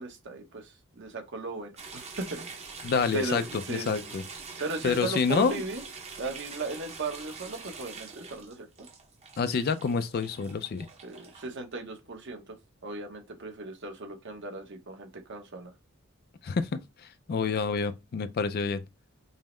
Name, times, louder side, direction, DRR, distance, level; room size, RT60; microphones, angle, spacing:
voice 1, 0.0-1.7 2.2-2.5 2.9-4.2 4.6-5.8 6.2-8.7 11.0-12.6 12.8-15.7, right 3 dB, 60° right, 0.9 m, -37 dB
sound 1, 1.8-11.5, right 4 dB, 30° right, 0.7 m, -44 dB
voice 2, 2.8-3.4 3.7-4.2 4.8-5.6 9.4-10.9 16.4-16.7 17.3-18.8, left 5 dB, 45° left, 0.4 m, -27 dB
5.4 x 2.1 x 3.1 m
head